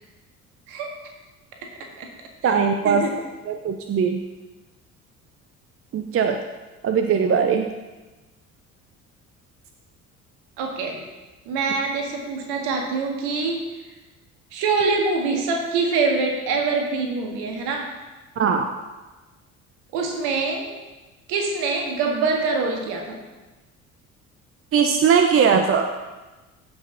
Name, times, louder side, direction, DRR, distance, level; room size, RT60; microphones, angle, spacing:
voice 1, 2.4-3.1 3.5-4.2 5.9-6.4 6.8-7.7 18.4-18.7 24.7-25.9, right 6 dB, 30° right, 6 dB, 0.7 m, -20 dB
voice 2, 10.6-11.0 11.5-13.6 14.5-17.9 19.9-20.7 21.3-23.2, right 4 dB, 60° right, 2 dB, 1.9 m, -24 dB
15.5 x 5.6 x 4.1 m, 1.2 s
figure-of-eight pair, 55°, 43 cm